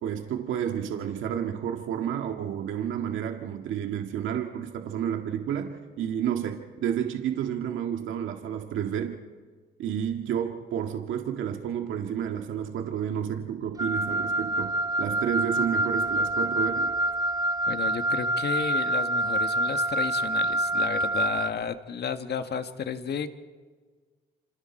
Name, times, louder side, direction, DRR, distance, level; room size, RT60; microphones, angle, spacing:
voice 1, 0.0-9.2 9.8-16.9, right 9 dB, 85° right, 4 dB, 1.9 m, -30 dB
Wind instrument woodwind instrument, 13.8-21.6, right 1 dB, 20° right, 0.6 m, -26 dB
voice 2, 17.6-23.3, left 7 dB, 55° left, 8 dB, 1.8 m, -32 dB
28.0 x 26.5 x 4.5 m, 1.5 s
cardioid pair, 90°, 20 cm